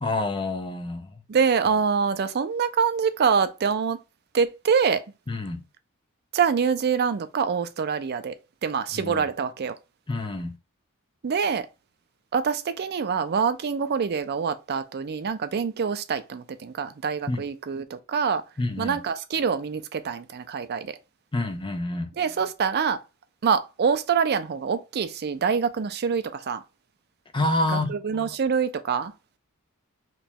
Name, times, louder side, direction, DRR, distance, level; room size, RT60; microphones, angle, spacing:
voice 1, 0.0-1.2 5.3-5.6 8.9-9.3 10.1-10.5 17.3-17.4 18.6-19.0 21.3-22.1 27.3-28.0, left 2 dB, 20° left, 0.5 m, -27 dB
voice 2, 1.3-4.0 4.3-5.0 6.3-8.3 8.6-9.7 11.2-11.6 12.3-18.4 18.8-21.0 22.2-23.0 23.4-26.6 27.7-29.1, right 6 dB, 45° right, 0.4 m, -25 dB
3.0 x 2.3 x 4.1 m
head